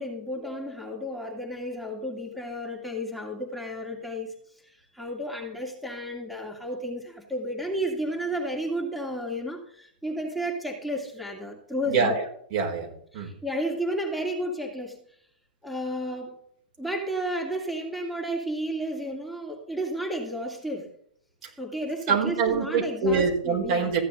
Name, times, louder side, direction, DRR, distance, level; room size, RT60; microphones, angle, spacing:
voice 1, 0.0-4.3 4.6-12.1 13.1-15.0 15.6-16.4 16.8-20.9 21.4-23.9, equal, ahead, 0 dB, 2.5 m, -32 dB
voice 2, 11.9-13.3 22.1-24.0, right 5 dB, 50° right, 1 dB, 4.6 m, -25 dB
15.0 x 10.0 x 3.8 m, 0.63 s
figure-of-eight pair, 100°, 5 cm